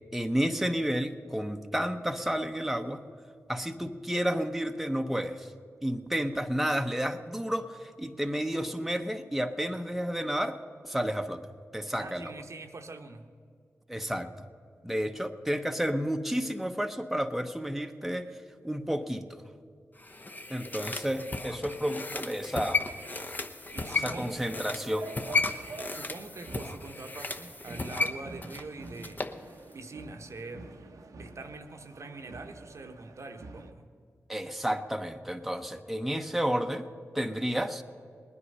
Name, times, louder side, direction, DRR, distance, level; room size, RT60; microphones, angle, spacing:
voice 1, 0.1-3.0 3.5-5.5 5.8-10.6 10.8-11.4 11.7-12.3 13.9-14.3 14.8-18.3 18.6-19.4 20.5-22.8 23.9-25.1 34.3-36.9 37.1-37.8, equal, 5° right, 5 dB, 0.9 m, -31 dB
voice 2, 12.0-13.3 23.7-24.4 25.9-30.7 31.2-33.9, right 3 dB, 60° right, 6 dB, 1.0 m, -44 dB
sound 1, 20.0-29.4 29.7-29.8, left 3 dB, 35° left, 1.0 m, -34 dB
sound 2, 23.7-33.7, right 3 dB, 85° right, 1.0 m, -47 dB
19.5 x 9.9 x 5.5 m, 2.3 s
cardioid pair, 50°, 6 cm